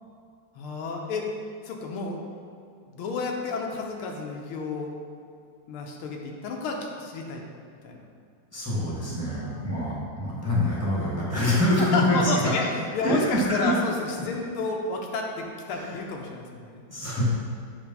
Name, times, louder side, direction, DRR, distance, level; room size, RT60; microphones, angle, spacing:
voice 1, 0.6-1.3 1.6-2.3 2.9-4.9 5.7-7.4 7.8-8.0 9.3-9.7 11.8-12.6 12.9-13.9 14.2-16.8, left 3 dB, 90° left, 1 dB, 1.7 m, -31 dB
voice 2, 8.5-12.5 13.0-13.7 15.7-16.0 16.9-17.2, left 1 dB, 10° right, -7 dB, 1.2 m, -25 dB
8.1 x 3.4 x 5.3 m, 2.3 s
omnidirectional pair, 2.3 m